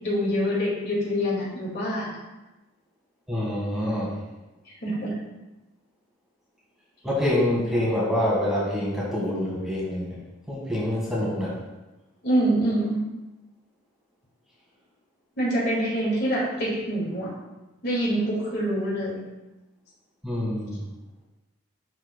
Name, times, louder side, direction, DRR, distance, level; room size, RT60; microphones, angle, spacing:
voice 1, 0.0-2.1 4.8-5.1 12.2-13.1 15.4-17.3 17.8-19.2, equal, 50° left, -4 dB, 2.0 m, -25 dB
voice 2, 3.3-4.1 7.0-10.2 10.5-11.6 20.2-20.8, left 1 dB, ahead, -7 dB, 1.6 m, -26 dB
11.5 x 4.3 x 2.2 m, 1.1 s
head